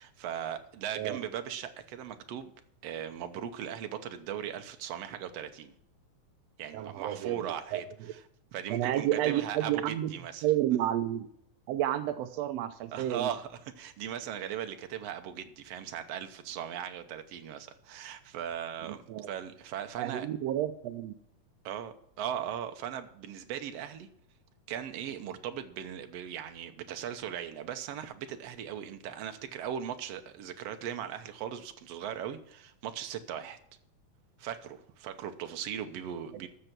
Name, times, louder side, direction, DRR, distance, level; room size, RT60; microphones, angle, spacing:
voice 1, 0.0-2.5 2.8-5.7 6.6-7.8 8.5-10.4 12.9-20.3 21.6-24.1 24.7-33.6 34.4-36.5, right 9 dB, 65° right, 8 dB, 1.7 m, -38 dB
voice 2, 6.7-7.5 7.7-7.8 8.7-10.1 10.4-11.3 11.7-13.3 18.9-19.3 20.0-21.1, right 12 dB, 85° right, 10 dB, 1.4 m, -30 dB
13.5 x 6.8 x 6.0 m, 0.70 s
omnidirectional pair, 3.7 m